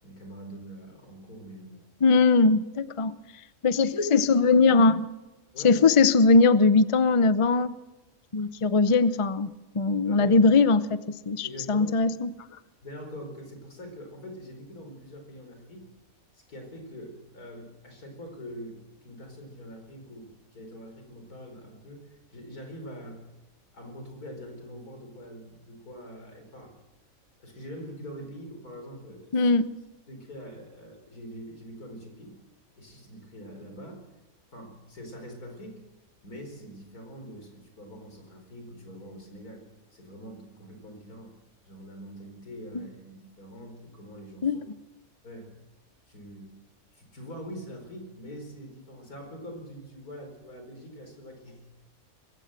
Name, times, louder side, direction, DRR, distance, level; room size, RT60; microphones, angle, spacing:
voice 1, 0.0-1.9 5.5-5.8 8.8-9.0 10.0-10.6 11.4-12.0 12.8-15.8 16.3-23.2 23.7-26.7 27.4-29.5 30.1-32.3 32.8-34.0 34.5-35.8 36.2-39.7 39.9-41.3 41.7-44.6 45.2-45.5 46.1-46.5 46.9-51.7, equal, 85° left, 5 dB, 5.1 m, -44 dB
voice 2, 2.0-3.2 3.6-5.1 5.6-7.7 8.3-9.5 9.7-12.3 29.3-29.7 42.7-42.9 44.4-44.6, left 4 dB, 30° left, 14 dB, 0.6 m, -21 dB
22.0 x 15.5 x 7.8 m, 1.1 s
omnidirectional pair, 1.5 m